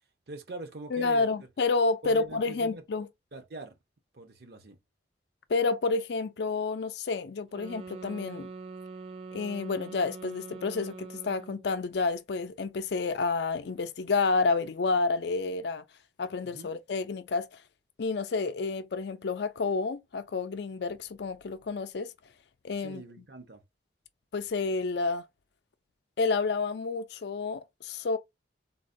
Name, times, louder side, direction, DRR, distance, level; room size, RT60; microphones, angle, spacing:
voice 1, 0.3-1.3 2.0-2.8 3.3-3.8 4.1-4.8 16.4-16.7 22.8-23.6, right 2 dB, 55° right, 0.7 m, -42 dB
voice 2, 0.9-3.1 5.5-8.5 9.3-15.8 16.2-17.5 18.0-22.1 22.6-23.0 24.3-25.2 26.2-28.2, left 4 dB, 65° left, 0.4 m, -29 dB
sound 1, 7.5-11.7, right 4 dB, 30° right, 0.3 m, -43 dB
3.8 x 2.1 x 2.6 m
head